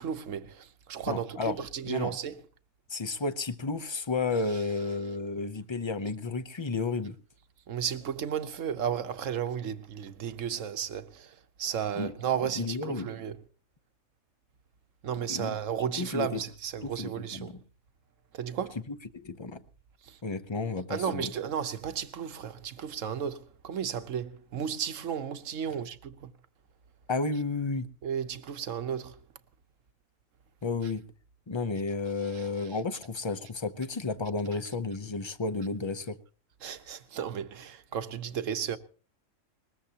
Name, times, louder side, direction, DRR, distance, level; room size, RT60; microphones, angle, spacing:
voice 1, 0.0-2.4 7.7-13.4 15.0-17.5 18.3-18.8 20.1-20.2 20.9-26.3 28.0-29.2 32.3-32.5 36.6-38.8, right 8 dB, 75° right, 1.3 m, -34 dB
voice 2, 1.1-2.1 2.9-7.2 11.9-12.1 12.4-13.1 15.3-15.5 16.0-16.4 16.8-17.6 18.9-19.6 20.2-21.3 27.1-27.9 30.6-31.0 31.5-36.2, left 3 dB, 25° left, 0.6 m, -32 dB
20.5 x 20.5 x 2.9 m
omnidirectional pair, 1.4 m